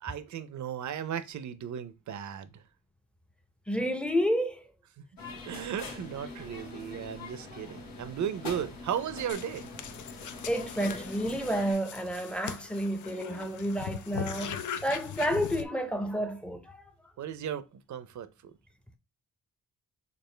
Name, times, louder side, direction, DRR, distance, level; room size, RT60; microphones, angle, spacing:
voice 1, 0.0-2.6 5.5-9.7 17.2-18.5, right 9 dB, 55° right, 0.6 m, -36 dB
voice 2, 3.7-4.6 10.5-16.8, equal, 5° left, 0.7 m, -30 dB
sound 1, 5.2-11.7, left 3 dB, 90° left, 1.5 m, -43 dB
sound 2, 9.3-15.6, left 9 dB, 60° left, 0.6 m, -40 dB
6.7 x 2.4 x 3.2 m
cardioid pair, 110°, 34 cm